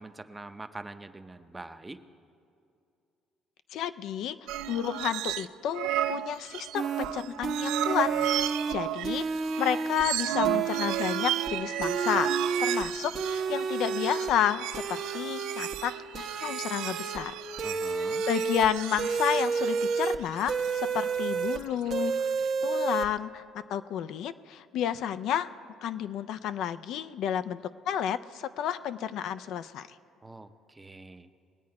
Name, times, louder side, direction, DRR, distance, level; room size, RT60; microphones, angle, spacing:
voice 1, 0.0-2.0 17.6-18.2 30.2-31.3, right 2 dB, 15° right, 9 dB, 0.6 m, -44 dB
voice 2, 3.7-4.4 4.7-8.1 8.7-9.2 9.6-17.3 18.3-22.1 22.6-23.4 23.7-25.5 25.8-29.9, left 9 dB, 70° left, 11 dB, 0.4 m, -31 dB
sound 1, 4.5-5.5 5.7-22.5, right 13 dB, 80° right, 0.3 m, -34 dB
sound 2, 6.7-7.1 7.4-8.7 9.0-10.0 10.4-11.5 11.8-12.8 13.1-14.3 14.7-15.8 16.1-17.2 17.6-18.7 19.0-20.2 20.5-21.6 21.9-23.1, right 5 dB, 50° right, 0.9 m, -30 dB
20.5 x 8.4 x 4.7 m, 2.5 s
cardioid pair, 90°, 0 cm